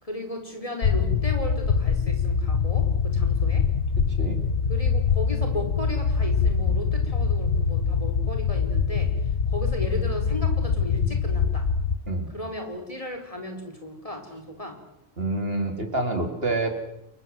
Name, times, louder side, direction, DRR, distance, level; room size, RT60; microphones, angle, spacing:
voice 1, 0.0-3.6 4.7-9.1 9.5-11.7 12.3-14.8, left 1 dB, 30° left, 4 dB, 4.8 m, -35 dB
sound 1, 0.8-12.0, left 6 dB, 75° left, 1.6 m, -24 dB
voice 2, 4.1-4.4 12.1-12.3 15.2-16.7, right 2 dB, 60° right, 4 dB, 4.3 m, -27 dB
30.0 x 22.0 x 7.9 m, 0.83 s
omnidirectional pair, 1.1 m